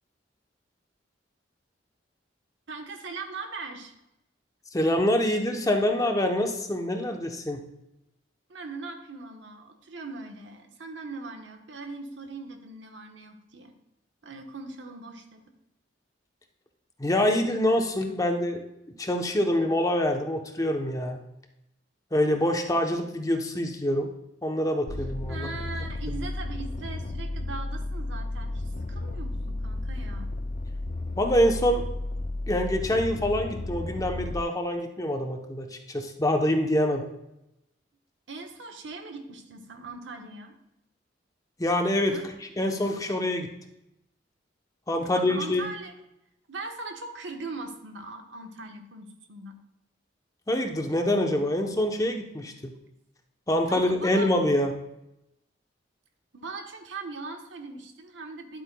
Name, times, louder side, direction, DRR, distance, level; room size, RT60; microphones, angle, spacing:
voice 1, 2.7-3.9 8.5-13.7 14.2-15.5 25.3-30.3 38.3-40.5 42.1-42.3 45.0-45.9 46.5-49.6 53.7-54.4 56.3-58.6, right 3 dB, 80° right, 4 dB, 1.1 m, -40 dB
voice 2, 4.7-7.7 17.0-18.6 19.0-21.2 22.1-24.1 24.4-25.5 31.2-31.8 32.5-37.1 41.6-42.2 42.6-43.5 44.9-45.7 50.5-52.5 53.5-54.8, left 1 dB, 20° left, 4 dB, 0.8 m, -25 dB
sound 1, 24.9-34.4, left 2 dB, 40° left, 0.4 m, -33 dB
11.0 x 8.1 x 2.2 m, 0.87 s
head